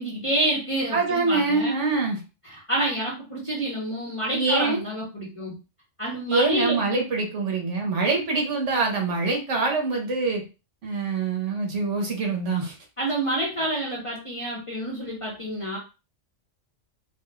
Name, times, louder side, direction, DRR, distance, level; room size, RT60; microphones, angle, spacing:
voice 1, 0.0-1.7 2.5-5.6 6.0-6.8 13.0-15.8, right 1 dB, 30° left, -4 dB, 0.8 m, -28 dB
voice 2, 0.9-2.2 4.3-4.8 6.3-10.4 10.8-12.7, right 3 dB, 75° right, 2 dB, 1.3 m, -24 dB
4.1 x 2.4 x 2.2 m, 0.30 s
omnidirectional pair, 1.2 m